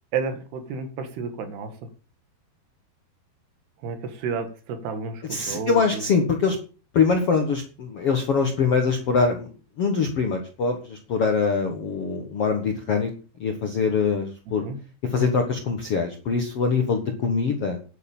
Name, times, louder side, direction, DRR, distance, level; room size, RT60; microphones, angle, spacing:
voice 1, 0.1-1.7 3.8-6.1 14.6-14.8, right 5 dB, 70° right, 7 dB, 3.9 m, -31 dB
voice 2, 5.3-6.6 6.9-9.5 9.8-13.1 13.4-14.6 15.1-17.8, left 5 dB, 60° left, 4 dB, 1.6 m, -23 dB
11.0 x 9.1 x 7.3 m, 0.37 s
omnidirectional pair, 4.9 m